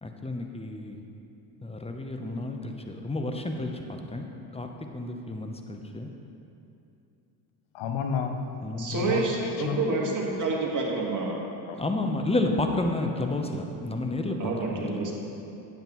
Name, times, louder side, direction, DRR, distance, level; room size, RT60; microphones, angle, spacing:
voice 1, 0.0-1.0 1.6-4.3 4.5-4.7 4.9-6.1 8.6-9.1 11.8-15.2, left 2 dB, 10° left, 4 dB, 0.8 m, -31 dB
voice 2, 7.7-8.4 8.7-10.1 10.6-10.7 11.1-11.8, left 6 dB, 65° left, 6 dB, 0.8 m, -33 dB
voice 3, 8.8-11.4 14.4-15.2, right 3 dB, 40° right, -2 dB, 1.8 m, -28 dB
9.2 x 7.7 x 3.1 m, 2.8 s
hypercardioid pair, 60°, 49 cm